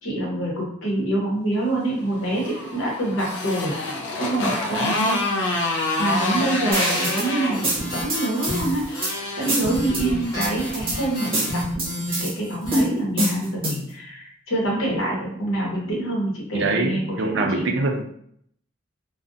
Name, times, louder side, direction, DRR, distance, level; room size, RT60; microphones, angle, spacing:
voice 1, 0.0-3.7 4.2-5.2 6.0-8.8 9.1-17.6, right 1 dB, 80° left, -3 dB, 0.9 m, -26 dB
Motorcycle, 2.1-11.5, left 2 dB, 55° left, 0.4 m, -28 dB
sound 1, 6.7-7.3 7.6-9.1 9.5-10.0 10.4-11.0 11.3-12.3 12.7-13.9, right 1 dB, 25° right, 0.7 m, -25 dB
sound 2, 7.5-12.8, equal, 15° left, 0.8 m, -31 dB
voice 2, 16.5-18.0, right 3 dB, 60° right, 4 dB, 0.4 m, -24 dB
2.4 x 2.0 x 2.5 m, 0.68 s
head